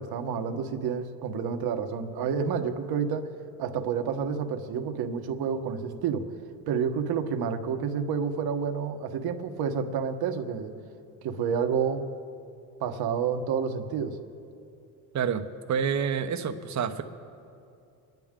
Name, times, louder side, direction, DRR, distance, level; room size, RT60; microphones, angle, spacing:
voice 1, 0.0-3.3 3.6-6.3 6.7-10.7 11.2-12.0 12.8-14.2, right 6 dB, 60° right, 6 dB, 1.3 m, -29 dB
voice 2, 15.1-17.0, right 7 dB, 40° right, 8 dB, 1.0 m, -28 dB
25.0 x 10.5 x 3.7 m, 2.5 s
supercardioid pair, 95°, 43 cm